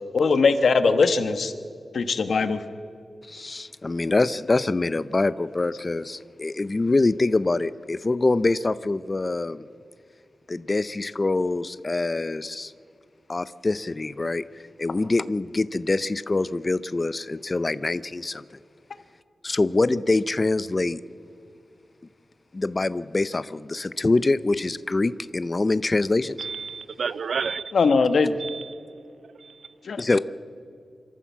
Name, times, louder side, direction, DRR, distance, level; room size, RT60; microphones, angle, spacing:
voice 1, 0.1-1.5 1.9-2.6 27.7-28.4 29.8-30.1, left 4 dB, 65° left, 10 dB, 1.2 m, -20 dB
voice 2, 3.3-9.7 10.5-12.7 13.3-14.4 14.8-18.4 19.4-21.0 22.5-26.4 30.0-30.2, left 2 dB, 25° left, 15 dB, 0.5 m, -24 dB
voice 3, 26.4-27.7 28.4-28.7 29.4-29.6, right 6 dB, 75° right, 16 dB, 0.6 m, -31 dB
26.0 x 14.0 x 7.3 m, 2.3 s
wide cardioid pair, 165°, 0 cm